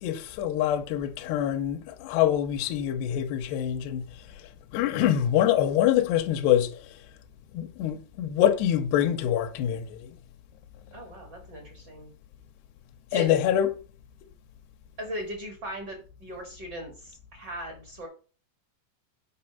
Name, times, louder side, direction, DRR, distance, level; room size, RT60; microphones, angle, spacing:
voice 1, 0.0-4.0 4.7-6.8 7.5-10.2 13.1-13.7, left 11 dB, 80° left, 2.6 m, -25 dB
voice 2, 10.9-12.1 13.1-13.3 15.0-18.1, equal, 50° right, 1.3 m, -38 dB
8.7 x 4.9 x 5.7 m
omnidirectional pair, 5.2 m